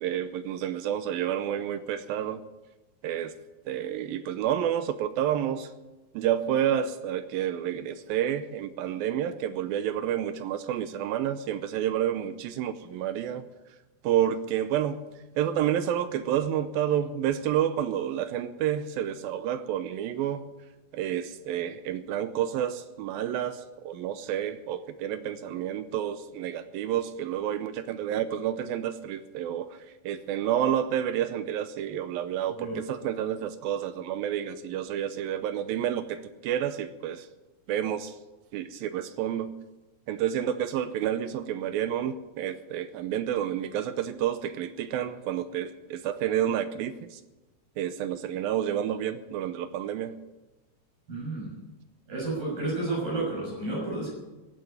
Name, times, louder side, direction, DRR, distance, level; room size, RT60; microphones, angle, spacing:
voice 1, 0.0-2.4 3.0-3.3 3.7-5.7 6.1-13.4 14.0-15.0 15.4-20.5 20.9-37.3 37.7-38.2 38.5-39.5 40.1-47.2 47.8-50.2, right 10 dB, 80° right, 11 dB, 2.2 m, -29 dB
voice 2, 51.1-51.5 52.1-54.1, right 2 dB, 55° right, -4 dB, 8.0 m, -31 dB
16.0 x 9.3 x 9.1 m, 1.1 s
omnidirectional pair, 4.7 m